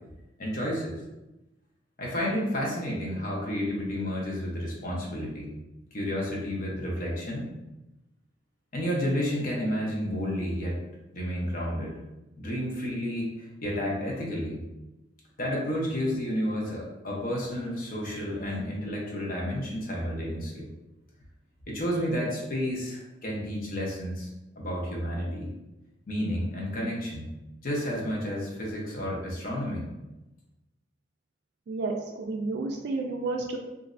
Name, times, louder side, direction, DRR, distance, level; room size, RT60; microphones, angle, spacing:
voice 1, 0.4-1.0 2.0-5.6 5.9-7.5 8.7-10.8 11.1-11.9 12.4-14.7 15.4-20.7 21.7-24.3 24.6-25.5 26.1-27.3 27.6-29.9, equal, 50° left, -3 dB, 0.8 m, -31 dB
voice 2, 31.7-33.6, right 3 dB, 60° right, 1 dB, 0.3 m, -31 dB
3.1 x 2.5 x 2.5 m, 0.98 s
head